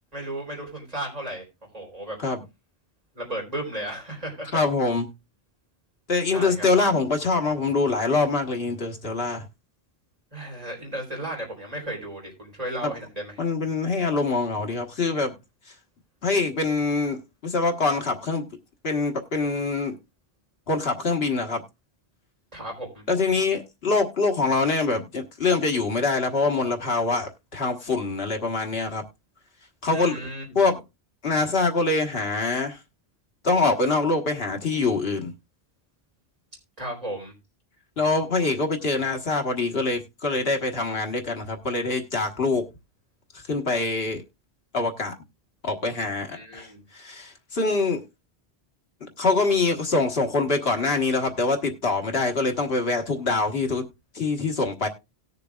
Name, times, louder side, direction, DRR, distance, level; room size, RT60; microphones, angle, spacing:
voice 1, 0.1-1.4 1.7-2.2 3.1-4.6 6.3-6.7 10.3-13.4 22.5-23.0 29.9-30.6 36.8-37.3 46.3-46.8, right 1 dB, 40° right, 4.0 m, -34 dB
voice 2, 4.5-5.1 6.1-9.4 13.4-15.4 16.2-18.5 18.8-20.0 20.7-21.6 23.1-29.0 29.8-30.2 30.5-30.8 31.2-32.8 33.4-35.3 38.0-42.6 43.3-44.2 44.7-45.1 45.6-46.7 46.9-48.0 49.2-53.9 54.1-54.9, left 3 dB, 75° left, 1.6 m, -24 dB
18.5 x 6.7 x 2.3 m
omnidirectional pair, 1.0 m